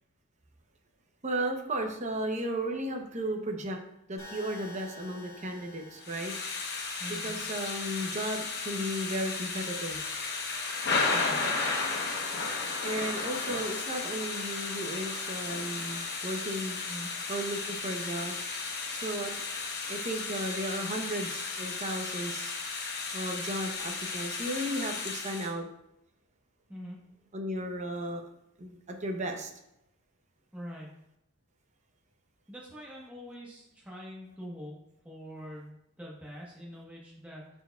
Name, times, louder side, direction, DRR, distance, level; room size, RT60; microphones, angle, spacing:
voice 1, 1.2-3.8 4.1-6.3 7.1-10.0 12.8-19.4 19.9-22.5 23.1-25.7 27.3-28.2 28.6-29.5, right 1 dB, 30° right, 3 dB, 0.7 m, -35 dB
sound 1, 4.2-8.2, left 2 dB, 15° left, 2.3 m, -50 dB
Thunder / Rain, 6.0-25.5, left 4 dB, 45° left, 1.0 m, -34 dB
voice 2, 7.0-7.3 11.1-11.4 16.9-17.1 26.7-27.0 30.5-31.0 32.5-34.8 35.0-37.5, equal, 5° right, -5 dB, 1.1 m, -44 dB
10.5 x 4.4 x 2.3 m, 0.84 s
head